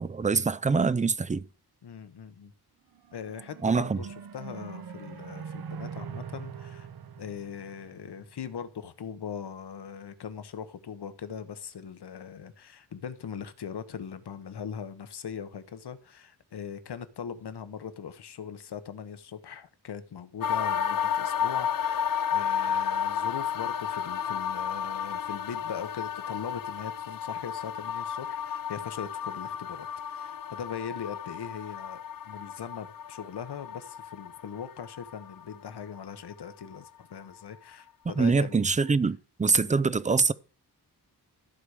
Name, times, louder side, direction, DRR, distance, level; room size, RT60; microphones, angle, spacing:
voice 1, 0.0-1.4 3.6-4.0 38.2-40.3, right 4 dB, 20° right, 0.5 m, -24 dB
voice 2, 1.8-2.5 3.1-6.9 7.2-22.0 22.3-32.0 32.2-38.6 39.5-39.8, left 7 dB, 75° left, 1.2 m, -40 dB
sound 1, 2.9-8.4, right 7 dB, 60° right, 0.9 m, -42 dB
sound 2, 20.4-36.4 36.7-36.8, left 8 dB, 55° left, 0.5 m, -32 dB
14.0 x 4.9 x 6.5 m
wide cardioid pair, 120°, 40 cm